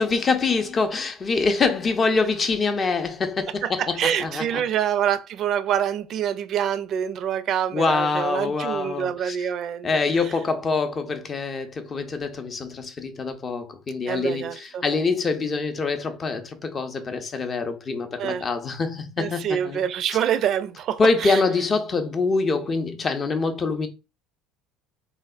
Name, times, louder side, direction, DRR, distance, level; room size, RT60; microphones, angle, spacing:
voice 1, 0.0-4.6 7.7-9.5 9.8-19.8 21.0-23.9, left 4 dB, 35° left, 0.5 m, -25 dB
voice 2, 3.6-9.9 14.1-14.8 18.2-18.4 19.2-21.4, right 9 dB, 50° right, 0.4 m, -26 dB
3.2 x 2.1 x 2.4 m
hypercardioid pair, 70°, 0 cm